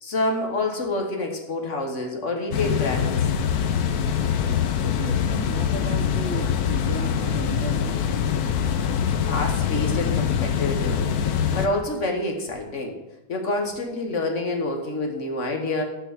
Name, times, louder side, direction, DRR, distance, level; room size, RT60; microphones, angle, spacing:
voice 1, 0.0-3.3 9.2-11.0 11.5-13.0 13.3-15.8, left 2 dB, 50° left, 2 dB, 1.5 m, -27 dB
sound 1, 2.5-11.7, left 8 dB, 70° left, 1.2 m, -24 dB
voice 2, 4.8-8.0, right 6 dB, 65° right, 5 dB, 0.7 m, -35 dB
8.8 x 4.6 x 7.2 m, 0.94 s
omnidirectional pair, 1.8 m